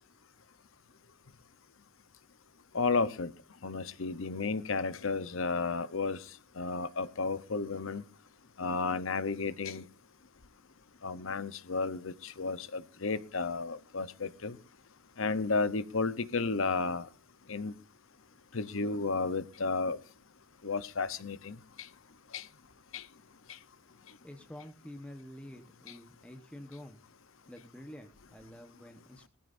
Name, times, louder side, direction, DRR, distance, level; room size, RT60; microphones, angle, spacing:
voice 1, 2.7-3.3 3.6-6.2 6.6-8.0 8.6-9.8 11.0-14.6 15.2-17.1 17.5-17.7 18.5-20.0 20.6-21.5 22.3-22.4 22.9-23.0, left 4 dB, 65° left, 0.9 m, -32 dB
voice 2, 24.2-27.0 27.5-29.3, left 1 dB, 5° left, 1.1 m, -48 dB
20.0 x 14.5 x 2.6 m
head